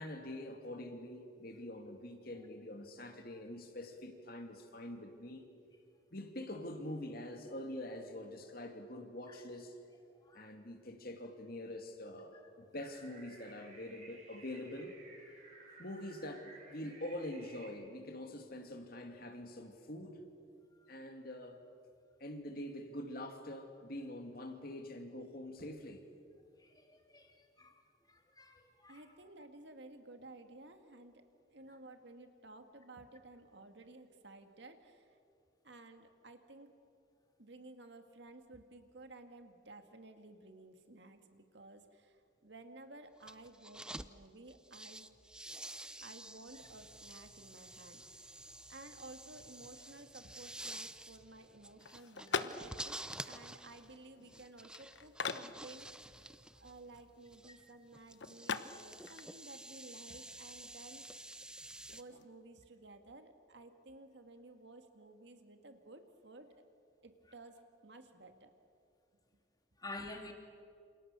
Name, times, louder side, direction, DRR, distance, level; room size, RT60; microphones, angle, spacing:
voice 1, 0.0-5.5 6.1-9.8 10.3-15.0 15.8-20.2 20.9-21.6 22.2-26.0, left 1 dB, 50° left, 5 dB, 2.6 m, -45 dB
sound 1, 12.8-17.7, right 3 dB, 40° right, 6.2 m, -57 dB
voice 2, 26.9-27.3 27.6-27.7 28.1-29.0 69.8-70.3, left 2 dB, 20° left, 3 dB, 2.5 m, -48 dB
voice 3, 28.9-35.2 35.6-36.8 37.4-45.1 46.0-56.2 56.5-61.2 61.9-66.5 67.0-68.5, right 2 dB, 65° right, 7 dB, 2.0 m, -55 dB
sound 2, 43.2-44.1 44.5-62.0, right 1 dB, 5° right, 0.5 m, -50 dB
sound 3, 51.8-62.3, left 5 dB, 70° left, 1.0 m, -45 dB
28.0 x 28.0 x 6.9 m, 2.5 s
head